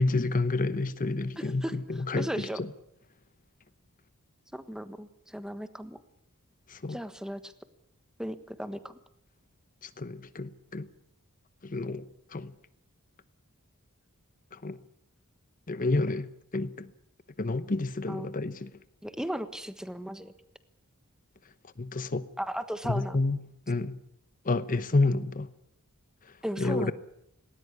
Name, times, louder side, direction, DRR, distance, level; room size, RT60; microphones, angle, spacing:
voice 1, 0.0-2.7 6.7-7.0 9.8-10.9 11.6-12.5 14.5-14.8 15.7-16.9 17.4-18.7 21.8-22.2 22.9-23.4 23.7-24.0 24.4-25.5 26.6-26.9, left 2 dB, 40° left, 13 dB, 0.9 m, -29 dB
voice 2, 1.4-1.8 2.2-2.6 4.5-6.0 6.9-7.5 8.2-9.0 18.1-18.3 19.0-20.3 22.4-23.2 26.4-26.9, equal, 5° right, 11 dB, 1.3 m, -36 dB
19.0 x 19.0 x 9.8 m, 0.75 s
head